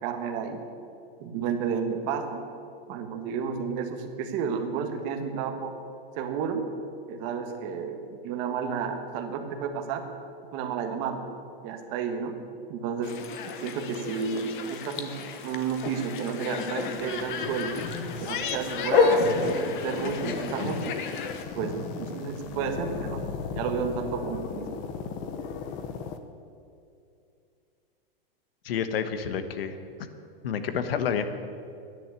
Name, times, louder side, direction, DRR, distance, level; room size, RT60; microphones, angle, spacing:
voice 1, 0.0-0.6 1.2-2.4 2.9-5.7 6.1-6.6 7.1-10.0 10.5-11.3 11.6-12.4 12.7-13.2 13.6-17.8 18.2-21.0 21.5-23.2 23.5-24.7, right 6 dB, 35° right, 5 dB, 1.4 m, -31 dB
sound 1, 13.0-21.4, left 5 dB, 55° left, 1.3 m, -30 dB
sound 2, 16.9-26.2, left 5 dB, 25° left, 0.7 m, -37 dB
voice 2, 28.6-29.8 30.4-31.2, left 7 dB, 75° left, 10 dB, 1.3 m, -29 dB
11.5 x 10.0 x 8.2 m, 2.5 s
supercardioid pair, 165°, 29 cm